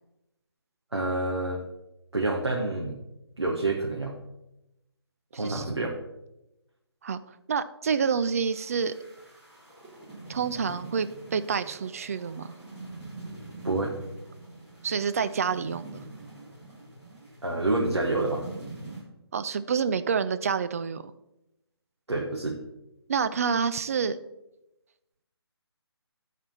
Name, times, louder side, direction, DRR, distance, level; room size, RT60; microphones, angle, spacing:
voice 1, 0.9-1.6 2.1-3.0 3.4-4.1 5.3-6.0 13.6-13.9 17.4-18.5 22.1-22.6, right 2 dB, 85° right, -2 dB, 1.5 m, -28 dB
voice 2, 5.3-5.6 7.0-7.2 7.5-8.9 10.3-12.5 14.8-16.0 19.3-21.0 23.1-24.2, right 6 dB, 35° right, 12 dB, 0.4 m, -28 dB
sound 1, 8.3-19.0, right 2 dB, 5° right, 2.8 m, -44 dB
12.0 x 4.2 x 5.4 m, 0.92 s
figure-of-eight pair, 150°, 14 cm